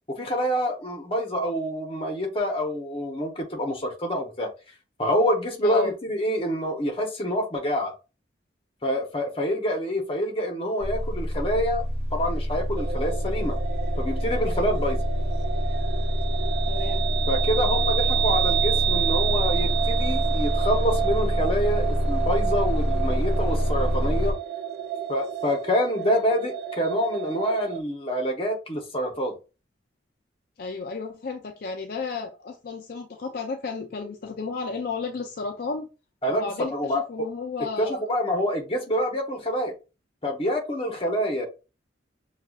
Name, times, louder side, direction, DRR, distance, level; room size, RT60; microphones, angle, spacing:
voice 1, 0.1-4.5 5.0-7.9 8.8-11.8 12.1-13.6 14.0-15.0 17.3-24.3 25.1-29.4 36.2-37.3 37.8-39.7 40.2-41.5, equal, 30° left, 0.9 m, -26 dB
sound 1, 10.8-24.3, equal, ahead, 2.4 m, -26 dB
sound 2, 12.7-27.8, right 10 dB, 60° right, 0.3 m, -30 dB
voice 2, 16.7-17.1 30.6-35.9 36.3-38.1, left 4 dB, 55° left, 0.5 m, -33 dB
6.4 x 2.4 x 2.3 m
head